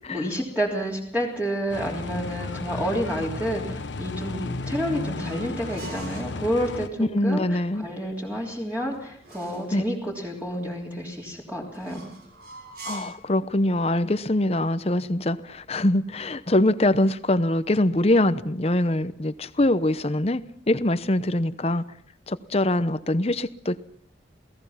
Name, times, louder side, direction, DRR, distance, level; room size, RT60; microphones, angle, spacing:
voice 1, 0.1-12.1, equal, 10° right, 3.3 m, -29 dB
sound 1, 1.7-6.9, left 3 dB, 80° left, 1.0 m, -34 dB
sound 2, 4.2-6.4 8.3-9.8 11.7-13.3, right 3 dB, 55° right, 6.8 m, -44 dB
voice 2, 7.0-7.9 9.7-9.8 12.8-20.4 20.7-21.8 22.3-23.8, left 1 dB, 35° left, 0.8 m, -23 dB
28.5 x 18.0 x 5.8 m
head